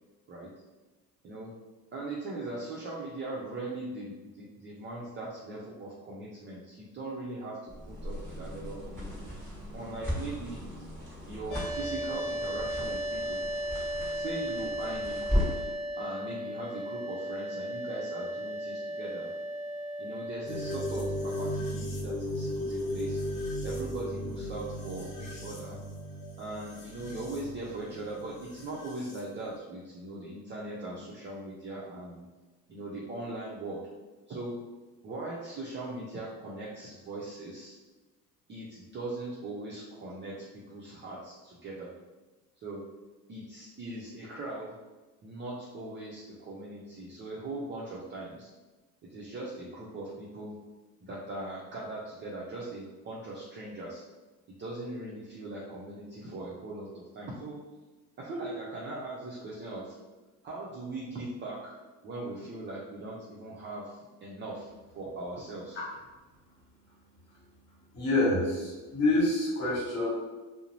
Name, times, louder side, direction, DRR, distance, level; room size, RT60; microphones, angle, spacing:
voice 1, 1.9-9.3 9.7-10.6 11.3-13.4 14.1-15.5 16.0-19.3 20.0-23.2 23.6-25.8 26.4-32.2 32.7-33.9 34.3-34.6 35.0-37.8 38.5-41.9 42.6-42.8 43.3-44.8 45.2-48.5 49.1-50.6 51.0-54.0 54.6-57.6 58.2-60.0 60.4-61.8 62.0-64.7 64.9-65.8, right 2 dB, 25° right, -5 dB, 0.5 m, -40 dB
sound 1, 7.7-15.8, left 1 dB, 5° left, 1.2 m, -36 dB
sound 2, 11.5-21.6, equal, 80° left, 0.6 m, -36 dB
sound 3, 20.5-29.2, left 1 dB, 55° left, 0.9 m, -36 dB
voice 2, 67.9-70.1, left 2 dB, 35° left, -5 dB, 1.4 m, -27 dB
2.4 x 2.0 x 2.9 m, 1.2 s
hypercardioid pair, 70°, 47 cm